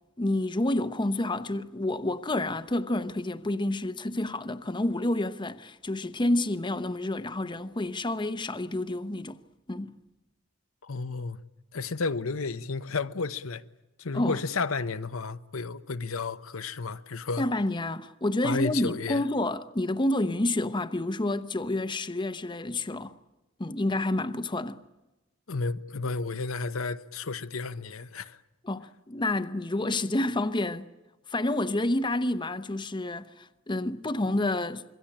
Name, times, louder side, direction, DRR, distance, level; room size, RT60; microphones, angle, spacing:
voice 1, 0.2-9.4 9.7-10.0 14.1-14.4 17.4-23.1 23.6-24.8 28.6-30.9 31.3-34.8, left 1 dB, 20° left, 0.8 m, -29 dB
voice 2, 10.8-11.4 11.7-13.6 14.0-17.5 18.4-19.2 25.5-28.4, left 4 dB, 80° left, 0.9 m, -32 dB
26.5 x 23.0 x 8.7 m
head